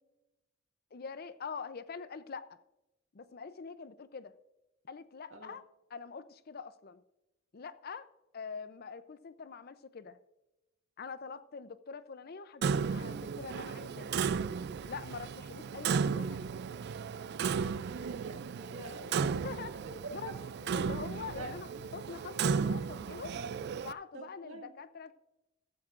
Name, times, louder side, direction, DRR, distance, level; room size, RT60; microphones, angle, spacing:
voice 1, 0.9-2.6 3.1-4.4 4.9-5.6 5.9-7.0 7.5-8.1 8.3-10.2 11.0-14.2 14.8-16.5 19.2-19.7 20.1-20.4 20.7-23.3 23.8-25.2, left 5 dB, 50° left, 14 dB, 0.5 m, -44 dB
Clock, 12.6-23.9, right 6 dB, 55° right, 0.3 m, -34 dB
voice 2, 17.8-19.3 20.0-21.0 21.3-22.1 23.3-23.5 24.1-24.7, right 3 dB, 85° right, 3 dB, 2.0 m, -46 dB
15.0 x 13.5 x 2.5 m, 0.99 s
head